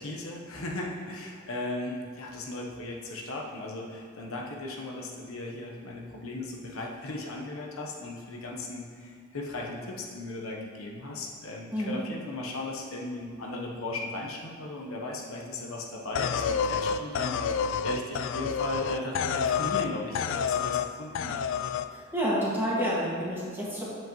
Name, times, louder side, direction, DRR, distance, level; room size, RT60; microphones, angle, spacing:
voice 1, 0.0-21.4, left 2 dB, 80° left, -1 dB, 1.0 m, -37 dB
sound 1, 16.1-19.9 20.1-20.9 21.1-21.9, left 7 dB, 65° left, 0.3 m, -29 dB
voice 2, 21.9-23.8, equal, 10° right, -7 dB, 1.9 m, -29 dB
7.8 x 7.7 x 3.1 m, 2.1 s
head